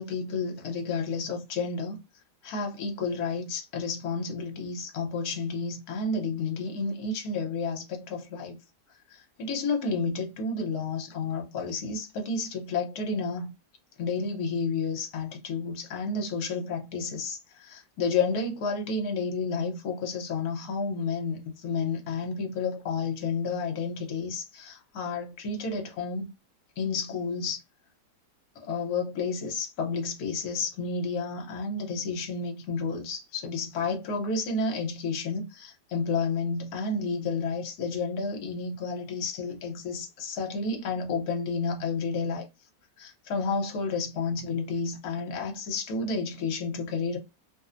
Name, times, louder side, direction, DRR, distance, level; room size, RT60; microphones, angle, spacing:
voice 1, 0.0-2.0 2.4-8.6 9.1-13.5 14.0-26.3 26.8-27.6 28.6-42.5 43.0-47.2, left 4 dB, 65° left, 1.2 m, -31 dB
2.9 x 2.0 x 2.4 m
omnidirectional pair, 1.9 m